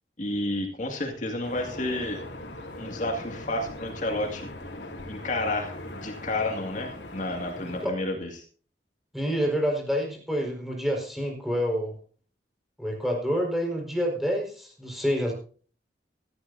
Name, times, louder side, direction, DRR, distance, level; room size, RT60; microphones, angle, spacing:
voice 1, 0.2-2.2 2.8-4.5 5.1-8.4, left 2 dB, 45° left, 2 dB, 2.3 m, -31 dB
sound 1, 1.4-7.9, left 1 dB, 85° left, 3.2 m, -40 dB
voice 2, 9.1-11.9 12.8-15.3, equal, ahead, 0 dB, 5.0 m, -27 dB
17.5 x 13.5 x 2.7 m, 0.42 s
head